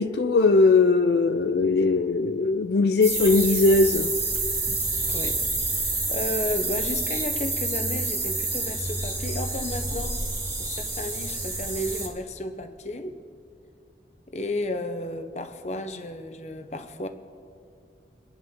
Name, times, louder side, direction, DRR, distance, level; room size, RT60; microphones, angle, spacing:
voice 1, 0.0-4.1, left 3 dB, 70° left, 0.4 m, -20 dB
sound 1, 3.0-12.1, right 2 dB, 20° right, 2.6 m, -28 dB
voice 2, 5.1-10.2 10.6-13.2 14.3-17.1, left 1 dB, 40° left, 0.9 m, -33 dB
24.5 x 10.5 x 3.8 m
head